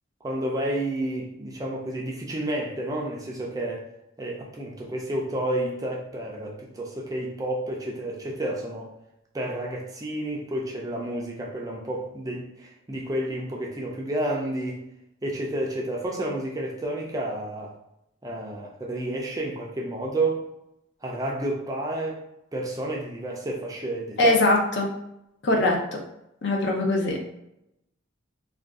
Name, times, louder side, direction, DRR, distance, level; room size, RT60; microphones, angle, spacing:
voice 1, 0.2-3.9 4.2-8.9 9.3-14.8 15.2-17.8 18.2-20.4 21.0-22.2 22.5-24.3, right 1 dB, 15° right, -1 dB, 0.4 m, -30 dB
voice 2, 24.2-24.9 25.4-25.8 26.4-27.2, left 2 dB, 55° left, 0 dB, 0.6 m, -21 dB
2.5 x 2.3 x 3.4 m, 0.85 s
head